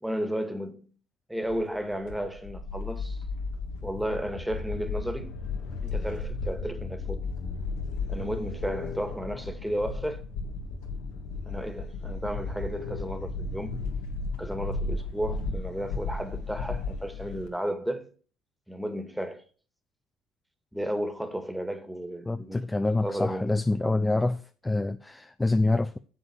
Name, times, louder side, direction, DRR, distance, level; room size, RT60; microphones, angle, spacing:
voice 1, 0.0-0.9 1.3-3.2 3.8-5.4 5.8-7.3 8.1-10.2 11.5-13.7 14.4-18.1 18.7-19.4 20.7-22.6 23.0-23.5, equal, 5° right, 2.0 m, -33 dB
sound 1, 1.5-17.5, left 3 dB, 80° left, 2.4 m, -34 dB
voice 2, 22.3-26.0, left 2 dB, 10° left, 0.6 m, -26 dB
9.8 x 7.3 x 4.6 m
supercardioid pair, 90°, 0 cm